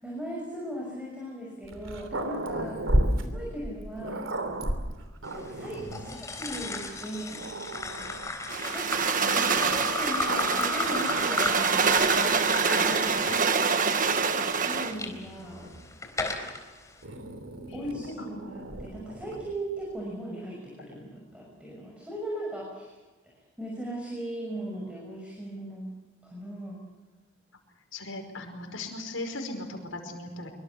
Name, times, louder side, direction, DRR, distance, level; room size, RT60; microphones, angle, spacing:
voice 1, 0.0-2.9 3.2-4.2 5.3-7.5 8.7-9.0 9.7-13.7 14.6-15.7 17.7-22.9 23.2-25.9 26.2-26.8, right 1 dB, 5° right, -2 dB, 6.1 m, -38 dB
Growling, 1.6-6.2 6.9-7.0 7.4-8.4 9.5-12.3 12.7-13.2 14.1-15.9 17.0-19.6, right 1 dB, 85° right, 3.2 m, -34 dB
sound 1, 5.9-15.1 15.7-16.6, left 2 dB, 15° left, 3.9 m, -34 dB
sound 2, 8.5-15.0, right 5 dB, 45° right, 1.5 m, -26 dB
voice 2, 9.2-9.7 13.2-13.7 17.7-18.0 27.9-30.5, left 2 dB, 85° left, 4 dB, 5.1 m, -38 dB
24.5 x 24.0 x 7.1 m, 1.2 s
head